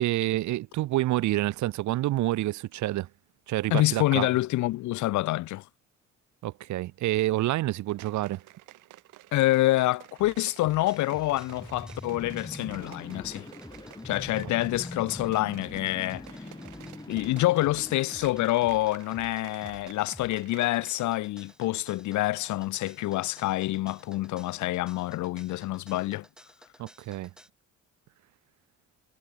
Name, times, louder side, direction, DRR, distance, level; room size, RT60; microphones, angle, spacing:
voice 1, 0.0-3.1 3.5-4.3 6.4-8.4 26.8-27.3, right 16 dB, 70° right, 0.6 m, -28 dB
voice 2, 3.7-5.6 9.3-13.5 14.0-16.3 17.1-26.2, left 17 dB, 70° left, 0.5 m, -27 dB
sound 1, 7.9-21.2 21.5-21.6, right 18 dB, 90° right, 1.1 m, -52 dB
sound 2, 10.2-27.5, equal, ahead, 5.8 m, -52 dB
sound 3, 10.8-18.9, left 2 dB, 15° left, 2.2 m, -43 dB
cardioid pair, 90°, 30 cm